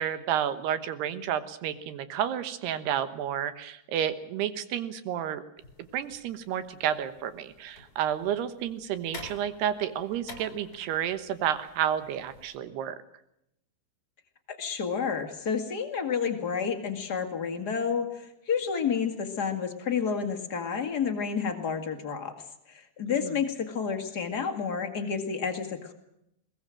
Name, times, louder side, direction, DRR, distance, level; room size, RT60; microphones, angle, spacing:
voice 1, 0.0-5.4 5.9-13.0 23.2-23.3, right 10 dB, 70° right, 12 dB, 3.1 m, -31 dB
sound 1, 5.6-12.6, left 3 dB, 25° left, 2.8 m, -50 dB
voice 2, 14.5-22.3 22.7-25.9, left 6 dB, 60° left, 5 dB, 1.0 m, -30 dB
22.0 x 20.0 x 7.6 m, 0.80 s
omnidirectional pair, 5.2 m